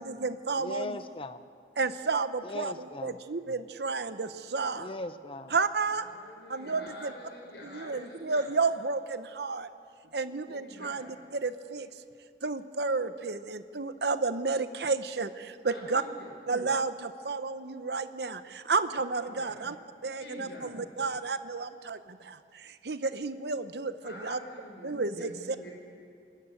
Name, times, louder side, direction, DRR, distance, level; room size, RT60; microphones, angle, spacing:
voice 1, 0.0-0.9 1.8-2.7 3.0-4.9 5.5-6.0 6.5-7.1 7.6-9.7 10.1-11.9 12.4-16.0 16.5-19.8 20.0-24.4 24.8-25.6, right 4 dB, 65° right, 11 dB, 0.9 m, -31 dB
voice 2, 0.6-1.4 2.4-3.3 4.7-5.5, left 2 dB, 30° left, 12 dB, 0.7 m, -39 dB
voice 3, 6.0-8.5 10.5-11.1 15.6-16.3 19.1-19.6 20.2-20.8 24.0-25.7, equal, 70° left, -1 dB, 6.7 m, -47 dB
25.0 x 13.5 x 9.0 m, 2.3 s
head